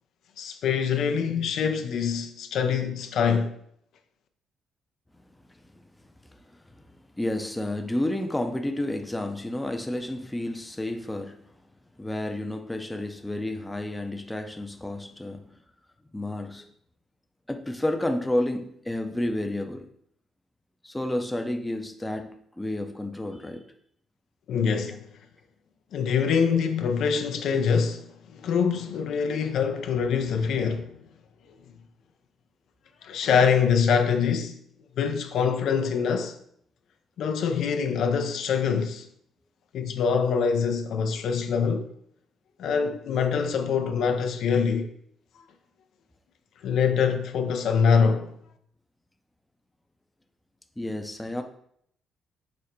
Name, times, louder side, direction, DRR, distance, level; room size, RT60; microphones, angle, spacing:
voice 1, 0.4-3.6 24.5-25.1 25.9-31.0 33.0-34.6 35.0-36.4 37.2-39.1 39.7-41.9 42.6-44.9 46.6-48.3, left 6 dB, 75° left, 0.4 m, -24 dB
voice 2, 6.3-6.9 7.2-11.4 12.0-15.6 16.1-16.7 17.5-19.9 20.8-23.7 50.8-51.4, left 1 dB, 10° left, 0.5 m, -31 dB
5.0 x 2.1 x 4.2 m
cardioid pair, 90°, 0 cm